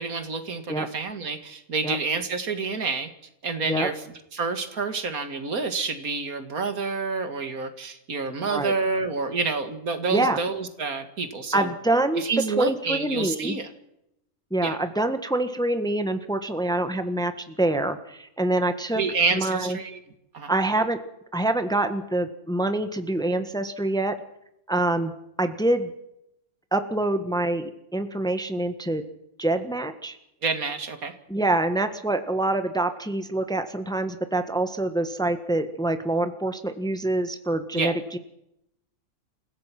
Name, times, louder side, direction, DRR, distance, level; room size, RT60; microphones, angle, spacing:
voice 1, 0.0-3.1 3.4-3.9 4.3-11.7 12.1-13.7 14.6-14.8 18.9-20.0 20.3-20.5 30.4-31.1 37.7-38.0, right 4 dB, 75° right, 8 dB, 2.4 m, -28 dB
voice 2, 10.1-10.4 11.5-12.2 12.6-13.6 14.5-19.0 19.3-19.8 20.5-21.0 21.3-24.1 24.7-25.1 25.4-25.9 26.7-29.0 29.4-30.2 31.3-38.2, right 2 dB, 5° left, 8 dB, 1.4 m, -25 dB
28.5 x 16.0 x 6.0 m, 0.81 s
omnidirectional pair, 1.5 m